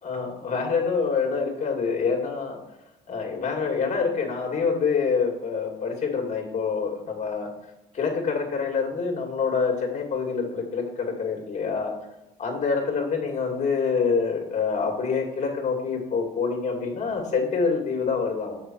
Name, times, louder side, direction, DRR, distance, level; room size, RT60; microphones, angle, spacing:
voice 1, 0.0-2.6 3.1-7.5 7.9-11.9 12.4-18.6, left 5 dB, 45° left, 2 dB, 2.4 m, -26 dB
7.4 x 5.8 x 4.5 m, 0.95 s
cardioid pair, 110°, 17 cm